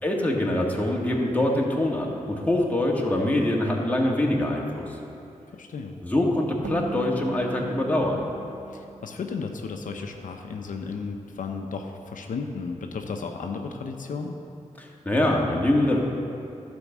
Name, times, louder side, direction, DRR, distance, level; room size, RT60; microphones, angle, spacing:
voice 1, 0.0-4.9 6.0-8.2 14.8-16.0, left 1 dB, 10° left, -2 dB, 1.9 m, -24 dB
voice 2, 5.6-6.0 8.7-14.4, left 4 dB, 85° left, 3 dB, 0.7 m, -34 dB
sound 1, 6.7-10.1, right 5 dB, 65° right, 0.9 m, -39 dB
11.5 x 5.3 x 7.3 m, 2.8 s
cardioid pair, 50°, 13 cm